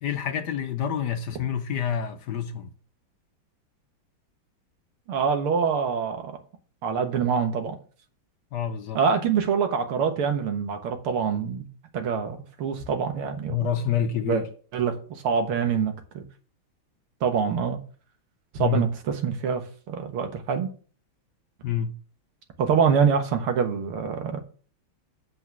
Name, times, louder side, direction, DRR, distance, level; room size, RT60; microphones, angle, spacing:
voice 1, 0.0-2.7 8.5-9.0 13.5-14.4 18.6-18.8 21.6-21.9, left 8 dB, 65° left, 1.1 m, -27 dB
voice 2, 5.1-6.4 6.8-7.8 8.9-11.7 11.9-13.6 14.2-14.4 14.7-16.2 17.2-17.8 18.6-19.6 19.9-20.7 22.6-24.4, right 6 dB, 90° right, 2.2 m, -25 dB
8.2 x 5.0 x 6.0 m
omnidirectional pair, 2.3 m